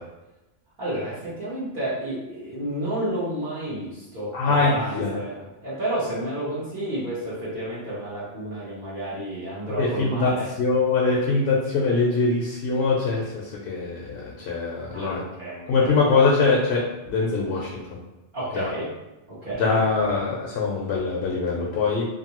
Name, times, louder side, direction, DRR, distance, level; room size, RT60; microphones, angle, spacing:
voice 1, 0.8-10.5 14.9-16.0 18.3-18.9 19.3-19.8, right 1 dB, 50° right, -10 dB, 0.9 m, -31 dB
voice 2, 4.3-5.2 9.8-10.3 10.6-15.2 15.7-17.8 18.5-18.7 19.6-22.1, left 4 dB, 70° left, -3 dB, 0.8 m, -23 dB
2.6 x 2.6 x 2.8 m, 1.0 s
omnidirectional pair, 1.2 m